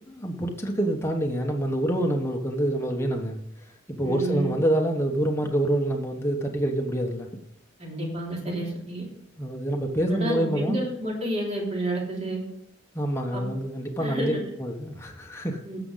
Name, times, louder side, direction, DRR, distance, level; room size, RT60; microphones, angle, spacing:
voice 1, 0.1-3.4 3.9-7.3 9.4-10.9 12.9-14.3 14.6-15.6, right 1 dB, 15° left, 2 dB, 1.2 m, -26 dB
voice 2, 4.0-4.5 7.8-9.0 10.1-12.4 13.3-13.5 14.0-14.4 15.6-15.8, right 1 dB, 35° right, -2 dB, 3.2 m, -30 dB
16.5 x 6.9 x 4.0 m, 0.75 s
head